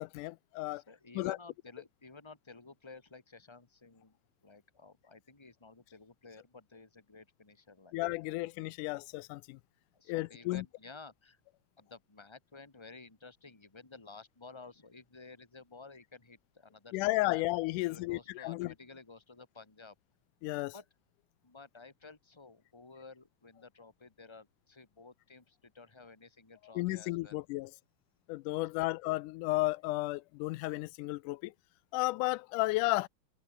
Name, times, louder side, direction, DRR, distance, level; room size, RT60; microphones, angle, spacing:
voice 1, 0.0-0.8 1.2-1.4 7.9-9.6 10.1-10.6 16.9-18.7 20.4-20.7 26.8-27.7 28.3-31.5 31.9-33.1, left 20 dB, 90° left, 2.1 m, -33 dB
voice 2, 0.7-4.1 4.4-8.0 9.9-11.4 11.8-17.4 17.9-20.0 20.7-20.9 21.4-27.4, left 4 dB, 10° left, 2.3 m, -53 dB
omnidirectional pair, 3.5 m